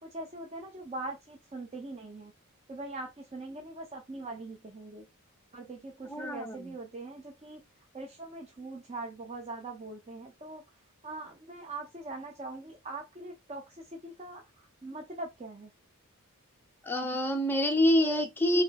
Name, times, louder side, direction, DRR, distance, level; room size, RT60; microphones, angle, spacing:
voice 1, 0.0-2.3 2.7-5.1 5.5-7.6 7.9-10.6 11.0-15.7, right 2 dB, 30° right, 0.6 m, -42 dB
voice 2, 6.1-6.6 16.8-18.6, left 1 dB, 10° left, 0.6 m, -26 dB
3.2 x 3.1 x 4.0 m
head